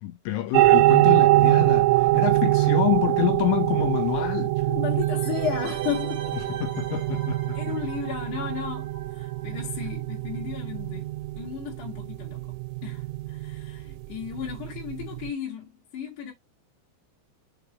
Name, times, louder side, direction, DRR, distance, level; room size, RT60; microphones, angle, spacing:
voice 1, 0.0-4.6 6.6-7.6, left 14 dB, 75° left, 3.2 m, -27 dB
sound 1, 0.5-15.3, right 18 dB, 85° right, 3.0 m, -24 dB
voice 2, 4.7-6.3 7.5-12.5 12.8-16.3, left 8 dB, 55° left, 2.4 m, -34 dB
sound 2, 5.0-10.5 10.7-10.8, right 8 dB, 65° right, 2.4 m, -40 dB
6.8 x 3.8 x 4.0 m
omnidirectional pair, 5.6 m